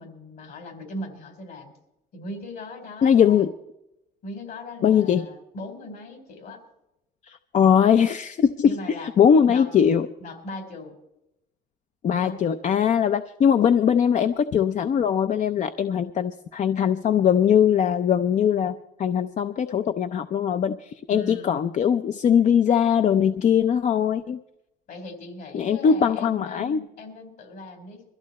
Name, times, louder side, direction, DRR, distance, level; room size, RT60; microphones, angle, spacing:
voice 1, 0.0-1.7 2.1-3.4 4.2-6.6 8.6-9.1 9.5-9.7 10.2-11.0 12.1-12.4 21.1-21.5 24.9-28.0, left 1 dB, 65° left, 5 dB, 4.0 m, -38 dB
voice 2, 3.0-3.5 4.8-5.3 7.3-8.8 9.2-10.1 12.0-24.4 25.5-26.8, left 8 dB, 45° left, 10 dB, 0.6 m, -21 dB
22.0 x 14.0 x 4.2 m, 0.89 s
cardioid pair, 110°, 17 cm